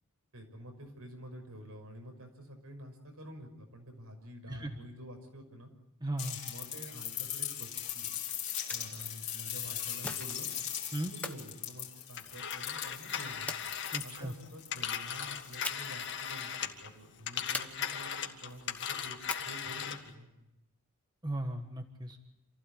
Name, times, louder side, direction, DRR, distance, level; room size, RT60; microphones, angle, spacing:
voice 1, 0.3-5.7 6.4-8.1 8.7-10.5 11.1-13.5 14.0-20.5, equal, 80° right, 4 dB, 6.0 m, -49 dB
voice 2, 6.0-6.4 10.9-11.1 13.9-14.3 21.2-22.2, right 1 dB, 20° right, 5 dB, 1.5 m, -36 dB
sound 1, 6.2-16.6 17.9-18.0, left 10 dB, 35° left, 3.5 m, -40 dB
sound 2, 8.2-9.1 10.0-10.7 11.2-12.5 13.5-14.2 15.6-16.1 16.4-16.5 17.5-18.3 19.3-19.8, left 2 dB, 5° left, 1.1 m, -43 dB
Telephone, 12.2-16.9 17.2-20.1, left 8 dB, 55° left, 1.9 m, -38 dB
28.0 x 16.0 x 8.6 m, 0.90 s
head